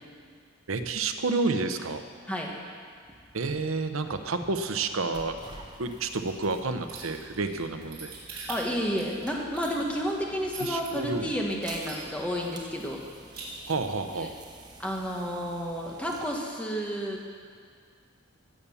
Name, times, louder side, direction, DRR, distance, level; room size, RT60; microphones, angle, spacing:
voice 1, 0.7-2.0 3.3-5.3 5.8-8.7 10.6-11.3 13.7-14.3, right 3 dB, 80° right, 7 dB, 0.8 m, -30 dB
sound 1, 3.0-16.4, right 2 dB, 20° right, 1.0 m, -49 dB
sound 2, 6.9-10.9 11.3-11.4 11.7-12.4 12.7-12.8 13.1-13.4, right 5 dB, 45° right, 3.9 m, -42 dB
voice 2, 8.5-13.0 14.2-14.3 14.8-17.4, equal, 5° left, -1 dB, 1.4 m, -31 dB
17.0 x 7.2 x 7.0 m, 2.1 s
head